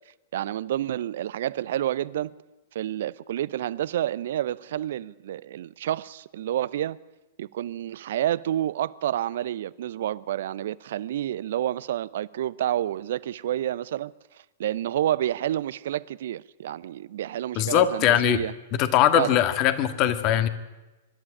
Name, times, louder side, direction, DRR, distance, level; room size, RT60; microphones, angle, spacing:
voice 1, 0.3-2.3 2.7-7.0 7.4-14.1 14.6-18.5 19.1-19.4, right 12 dB, 60° right, 0.7 m, -29 dB
voice 2, 17.6-18.4 18.8-20.5, left 11 dB, 40° left, 1.8 m, -21 dB
24.5 x 12.0 x 9.9 m
figure-of-eight pair, 100°, 0 cm